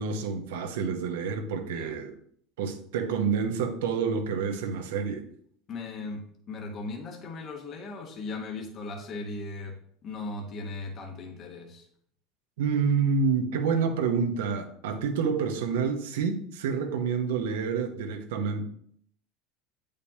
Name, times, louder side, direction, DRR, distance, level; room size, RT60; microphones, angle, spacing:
voice 1, 0.0-2.1 2.6-5.2 12.6-18.6, right 5 dB, 85° right, 5 dB, 0.9 m, -28 dB
voice 2, 1.6-2.0 5.7-11.9, left 3 dB, 45° left, 1 dB, 1.1 m, -38 dB
8.4 x 5.1 x 2.8 m, 0.65 s
supercardioid pair, 95°, 0 cm